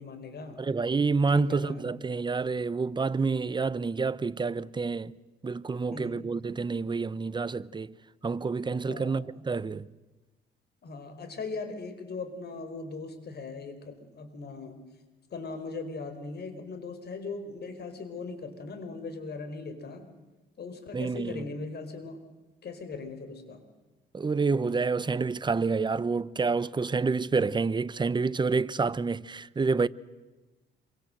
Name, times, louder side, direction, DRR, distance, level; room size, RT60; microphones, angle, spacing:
voice 1, 0.0-0.7 1.3-1.9 5.9-6.3 8.9-9.2 10.8-14.8 15.3-20.1 20.6-22.2 22.6-23.6, left 3 dB, 55° left, 4.7 m, -39 dB
voice 2, 0.6-5.2 5.4-7.9 8.2-9.9 20.9-21.5 24.1-29.9, right 4 dB, 25° right, 0.8 m, -28 dB
27.0 x 24.5 x 7.9 m
cardioid pair, 90°, 20 cm